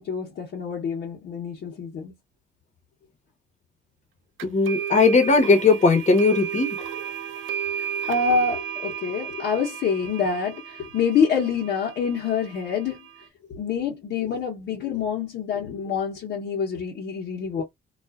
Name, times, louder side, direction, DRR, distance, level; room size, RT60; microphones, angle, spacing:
voice 1, 0.0-2.1 8.1-13.0 13.5-17.6, left 6 dB, 65° left, 0.9 m, -26 dB
voice 2, 4.4-6.8, left 4 dB, 35° left, 0.9 m, -18 dB
sound 1, 4.4-13.3, right 9 dB, 80° right, 0.5 m, -34 dB
2.4 x 2.4 x 2.3 m
cardioid pair, 90°, 20 cm